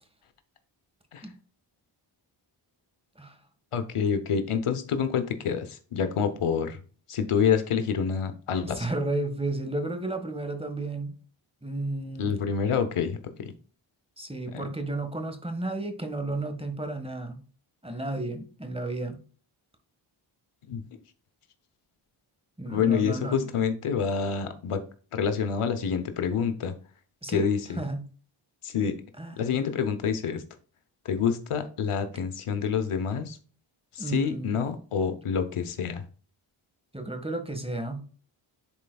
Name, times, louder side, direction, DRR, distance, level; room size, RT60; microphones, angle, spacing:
voice 1, 3.7-6.8 7.1-8.9 12.2-13.5 14.5-14.7 20.7-20.8 22.7-24.8 25.1-26.7 27.3-27.8 28.6-29.0 29.4-30.4 31.0-33.4 33.9-36.0, left 6 dB, 85° left, 9 dB, 0.9 m, -27 dB
voice 2, 8.6-11.1 11.6-12.4 14.2-17.4 17.8-19.2 22.6-23.5 27.2-27.5 27.8-28.0 29.2-29.8 34.0-34.6 36.9-38.1, right 2 dB, 10° right, 6 dB, 1.5 m, -33 dB
10.5 x 4.2 x 2.3 m, 0.40 s
cardioid pair, 45°, 49 cm